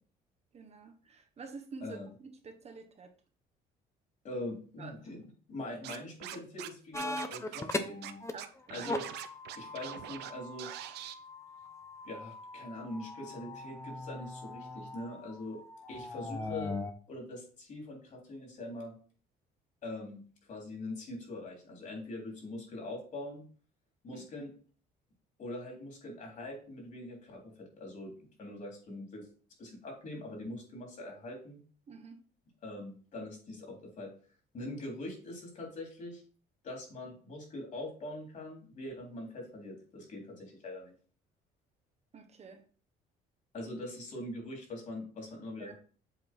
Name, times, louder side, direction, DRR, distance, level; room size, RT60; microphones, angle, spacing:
voice 1, 0.5-3.1 4.8-5.0 7.0-7.1 8.3-8.9 24.1-24.2 31.9-32.2 42.1-42.6 45.6-45.7, right 4 dB, 40° right, 1.2 m, -48 dB
voice 2, 4.2-8.2 8.7-9.1 9.6-10.7 12.0-15.6 15.9-16.7 17.1-18.9 19.8-20.2 20.5-23.4 24.0-24.5 25.4-29.3 29.6-31.6 32.6-34.1 34.5-36.2 36.6-40.9 43.5-45.7, left 1 dB, 50° left, 3.6 m, -43 dB
Scratching (performance technique), 5.8-6.7 7.0-7.7 8.0-8.1 8.4-10.3 10.6-11.1, right 13 dB, 80° right, 0.7 m, -43 dB
sound 1, 6.9-8.3 8.6-16.9, left 2 dB, 15° left, 0.8 m, -40 dB
7.8 x 3.8 x 4.6 m
cardioid pair, 110°, 17 cm